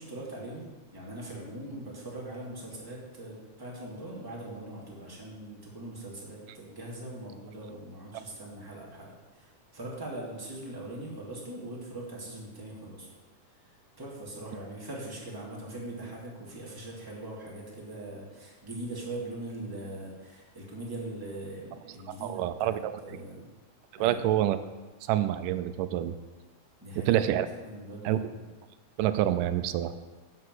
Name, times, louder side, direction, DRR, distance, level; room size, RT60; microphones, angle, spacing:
voice 1, 0.0-13.1 13.6-23.5 24.0-24.3 26.8-27.3 27.6-28.5, right 1 dB, 5° right, -4 dB, 2.3 m, -41 dB
voice 2, 22.2-23.0 24.0-24.6 25.0-26.1 27.1-27.5 28.0-28.2 29.0-30.0, right 12 dB, 90° right, 11 dB, 2.2 m, -27 dB
11.5 x 5.7 x 7.8 m, 1.2 s
omnidirectional pair, 3.7 m